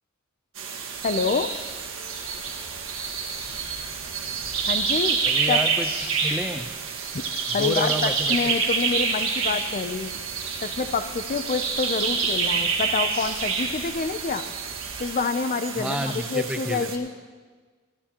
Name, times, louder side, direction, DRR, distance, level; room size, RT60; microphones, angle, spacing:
sound 1, 0.6-17.0, right 5 dB, 70° right, 1.6 m, -28 dB
sound 2, 0.9-15.1, equal, 80° left, 4.8 m, -50 dB
voice 1, 1.0-1.5 4.7-5.2 5.5-5.6 7.5-10.2 10.6-14.4 15.0-17.1, left 4 dB, 40° left, 11 dB, 0.5 m, -27 dB
voice 2, 5.2-6.7 7.5-8.6 15.7-16.9, right 1 dB, 5° right, 7 dB, 0.6 m, -30 dB
18.5 x 13.5 x 2.9 m, 1.5 s
head